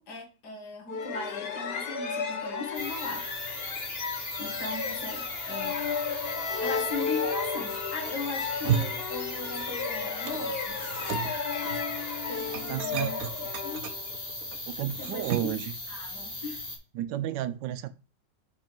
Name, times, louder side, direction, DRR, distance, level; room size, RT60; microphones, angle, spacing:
voice 1, 0.0-3.3 4.4-5.9 6.6-10.8 12.3-13.3 13.6-14.0 15.0-15.6 15.9-16.6, left 4 dB, 65° left, 2.0 m, -38 dB
sound 1, 0.9-14.4, left 5 dB, 50° left, 0.8 m, -34 dB
sound 2, 2.7-16.8, left 2 dB, 25° left, 1.7 m, -38 dB
sound 3, 8.4-9.8 10.1-15.6, right 8 dB, 60° right, 1.0 m, -35 dB
voice 2, 12.7-13.1 14.7-15.7 16.9-17.9, right 12 dB, 80° right, 1.3 m, -32 dB
5.3 x 4.5 x 5.2 m
omnidirectional pair, 1.9 m